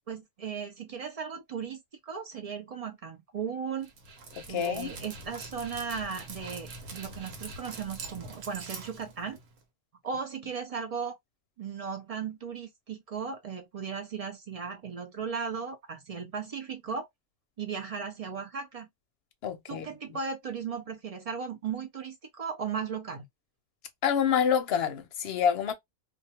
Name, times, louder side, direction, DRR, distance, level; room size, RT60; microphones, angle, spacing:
voice 1, 0.1-1.8 2.1-3.9 4.5-9.4 10.0-11.2 11.6-17.1 17.6-18.9 19.7-23.3, right 6 dB, 65° right, 0.3 m, -36 dB
Dog, 3.8-9.6, right 3 dB, 90° right, 1.1 m, -44 dB
voice 2, 4.5-4.9 19.4-19.9 24.0-25.7, left 8 dB, 65° left, 0.7 m, -27 dB
2.3 x 2.2 x 2.7 m
omnidirectional pair, 1.3 m